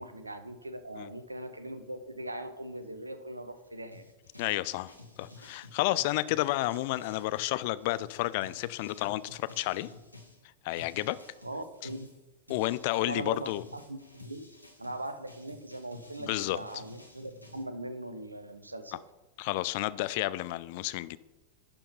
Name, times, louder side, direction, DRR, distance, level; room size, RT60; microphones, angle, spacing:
voice 1, 0.0-4.0 11.4-12.1 13.0-14.4 14.8-19.0, right 1 dB, 80° right, 0.7 m, -40 dB
sound 1, 3.9-10.4 10.8-17.6, left 2 dB, 90° left, 1.3 m, -52 dB
voice 2, 4.4-4.9 5.2-9.9 10.6-11.2 12.5-13.6 16.3-16.6 19.4-21.2, left 17 dB, 50° left, 0.4 m, -31 dB
11.0 x 4.6 x 5.4 m
figure-of-eight pair, 90°, 0 cm